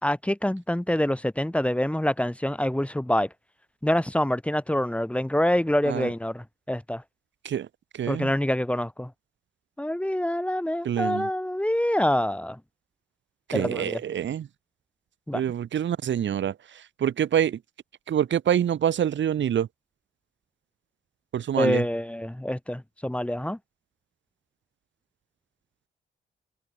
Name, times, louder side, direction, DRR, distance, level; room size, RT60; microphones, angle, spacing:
voice 1, 0.0-3.3 3.8-7.0 8.1-9.1 9.8-12.6 13.5-14.0 15.3-15.4 21.6-23.6, left 1 dB, 5° left, 3.0 m, -26 dB
voice 2, 8.0-8.3 10.8-11.3 13.5-14.5 15.3-16.5 17.0-17.6 18.1-19.7 21.3-21.8, right 9 dB, 90° right, 3.0 m, -26 dB
cardioid pair, 90°, 19 cm